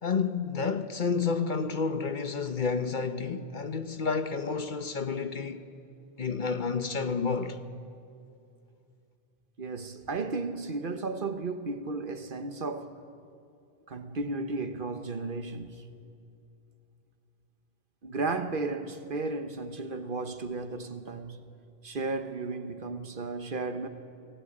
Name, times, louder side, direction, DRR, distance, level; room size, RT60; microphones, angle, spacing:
voice 1, 0.0-5.6 6.2-7.6, left 5 dB, 50° left, 1.0 m, -30 dB
voice 2, 9.6-12.9 13.9-15.9 18.0-21.5 21.8-23.9, right 3 dB, 55° right, 1.2 m, -34 dB
25.0 x 18.5 x 8.7 m
omnidirectional pair, 1.1 m